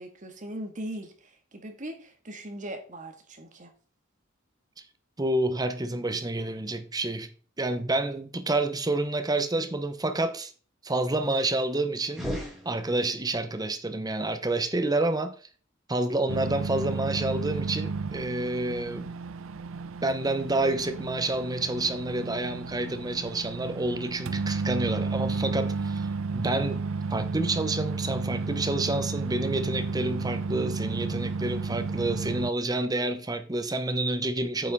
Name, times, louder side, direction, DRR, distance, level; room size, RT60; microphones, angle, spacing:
voice 1, 0.0-3.7, right 1 dB, 40° right, 1.8 m, -39 dB
voice 2, 5.2-7.3 7.6-10.5 10.8-12.3 12.6-15.4 15.9-19.2 20.0-26.8 27.1-34.7, right 2 dB, 20° right, 0.9 m, -29 dB
sound 1, 12.1-13.4, equal, 5° right, 3.0 m, -36 dB
sound 2, 16.3-32.5, right 4 dB, 85° right, 0.5 m, -32 dB
9.0 x 5.5 x 4.1 m
head